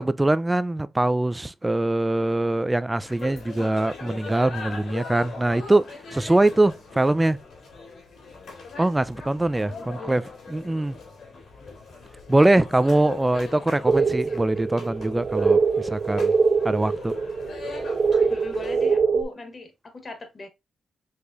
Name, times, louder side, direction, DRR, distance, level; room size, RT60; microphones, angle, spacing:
voice 1, 0.0-7.4 8.8-10.2 10.5-11.0 12.3-16.3 16.6-17.1, right 2 dB, 15° right, 0.4 m, -22 dB
sound 1, 3.0-19.0, left 4 dB, 70° left, 2.7 m, -41 dB
voice 2, 9.6-10.2 14.3-14.6 18.3-20.5, left 3 dB, 40° left, 1.4 m, -40 dB
sound 2, 13.9-19.2, right 5 dB, 50° right, 1.3 m, -23 dB
4.9 x 3.4 x 2.7 m
cardioid pair, 70°, 0 cm